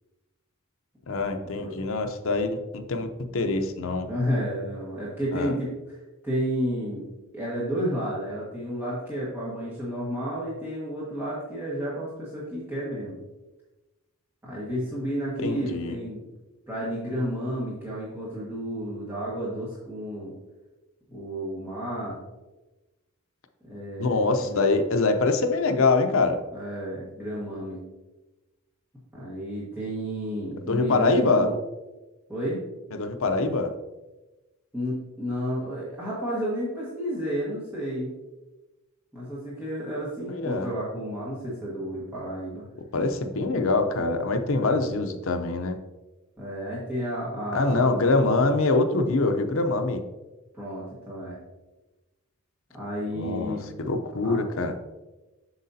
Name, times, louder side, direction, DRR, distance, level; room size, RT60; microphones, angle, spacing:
voice 1, 1.1-3.1 3.3-4.1 5.3-5.6 15.4-15.9 24.0-26.4 30.7-31.5 32.9-33.7 40.3-40.7 42.9-45.8 47.5-50.0 53.1-54.7, left 3 dB, 60° left, 6 dB, 0.6 m, -24 dB
voice 2, 4.1-6.0 6.2-7.1 7.3-13.2 14.4-16.2 16.7-20.3 21.1-22.2 23.7-24.6 26.5-27.8 29.1-31.6 32.3-32.6 34.7-38.1 39.1-42.6 44.5-44.9 46.4-47.9 50.5-51.3 52.7-53.6 54.2-54.4, equal, 10° right, -8 dB, 1.5 m, -31 dB
7.8 x 6.4 x 2.7 m, 1.1 s
head